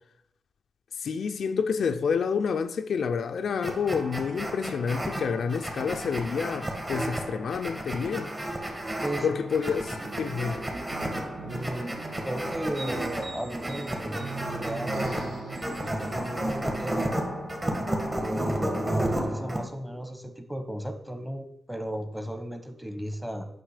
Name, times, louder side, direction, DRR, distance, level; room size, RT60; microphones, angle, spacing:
voice 1, 1.0-8.3 9.2-10.6, left 6 dB, 70° left, 0.5 m, -28 dB
sound 1, 3.6-19.6, right 1 dB, 25° right, 1.8 m, -32 dB
sound 2, 10.0-17.0, right 3 dB, 60° right, 1.4 m, -40 dB
voice 2, 11.4-11.9 12.2-14.2 14.5-15.3 15.7-17.1 18.2-23.5, equal, ahead, 1.2 m, -35 dB
8.9 x 5.9 x 5.0 m
cardioid pair, 105°, 0 cm